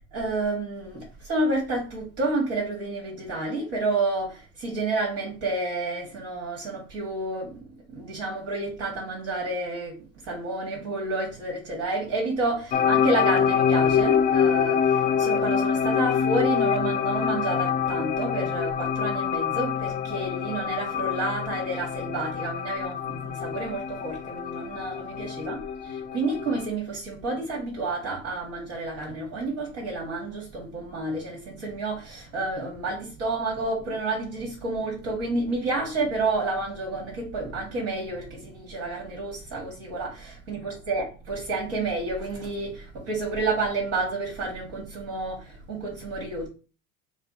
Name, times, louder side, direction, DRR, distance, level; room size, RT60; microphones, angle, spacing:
voice 1, 0.1-10.0 10.2-46.5, right 2 dB, 65° right, 2.0 m, -30 dB
sound 1, 12.7-26.7, left 7 dB, 25° left, 0.4 m, -25 dB
4.1 x 2.3 x 4.1 m
supercardioid pair, 95°, 38 cm